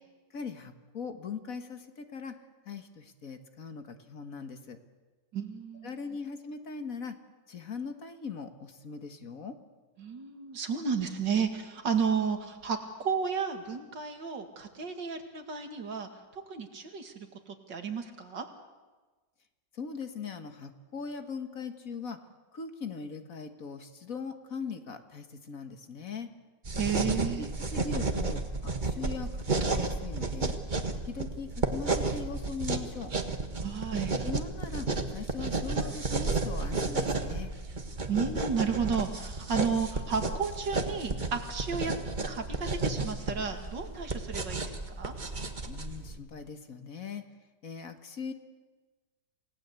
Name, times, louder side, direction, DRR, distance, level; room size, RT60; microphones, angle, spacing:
voice 1, 0.3-2.4 2.7-4.8 5.8-7.2 7.5-9.6 19.7-22.2 22.5-26.3 27.0-30.6 31.0-33.1 34.2-37.5 45.7-47.2 47.6-48.3, left 5 dB, 50° left, 8 dB, 1.8 m, -40 dB
voice 2, 5.3-5.9 10.0-12.8 13.0-18.5 26.8-27.5 33.6-34.2 38.1-41.9 42.3-45.1, right 6 dB, 80° right, 5 dB, 2.8 m, -32 dB
sound 1, 26.7-46.2, right 3 dB, 25° right, 1.6 m, -32 dB
28.0 x 18.0 x 8.2 m, 1.3 s
omnidirectional pair, 1.9 m